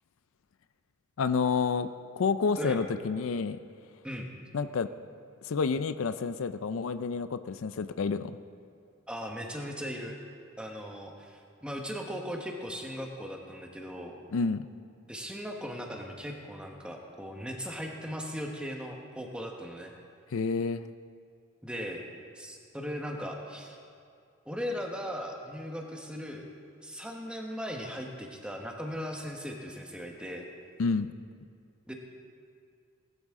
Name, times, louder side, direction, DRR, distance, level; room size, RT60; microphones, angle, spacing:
voice 1, 1.2-1.9 2.2-3.6 4.5-4.9 5.4-8.4 14.3-14.7 20.3-20.8 30.8-31.1, left 5 dB, 70° left, 12 dB, 0.4 m, -29 dB
voice 2, 9.1-10.2 10.6-14.2 15.1-19.9 21.6-22.1 22.3-23.8 24.4-26.4 26.8-30.5 31.9-32.0, equal, 5° right, 1 dB, 1.1 m, -38 dB
19.0 x 12.0 x 3.6 m, 2.3 s
head